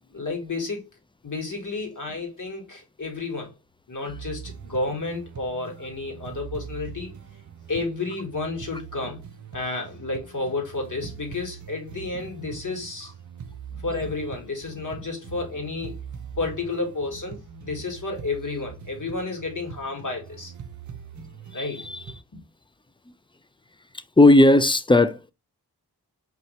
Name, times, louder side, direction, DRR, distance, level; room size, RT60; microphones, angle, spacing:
voice 1, 0.1-0.8 1.2-3.5 3.9-7.1 7.7-9.2 9.5-13.1 13.8-16.0 16.4-20.5 21.5-21.9 22.3-22.4, left 3 dB, 50° left, 1.9 m, -31 dB
sound 1, 4.1-22.2, right 7 dB, 50° right, 0.6 m, -42 dB
voice 2, 21.5-22.0 24.2-25.3, left 2 dB, 15° left, 0.3 m, -17 dB
4.7 x 2.7 x 3.1 m
cardioid pair, 55°, 40 cm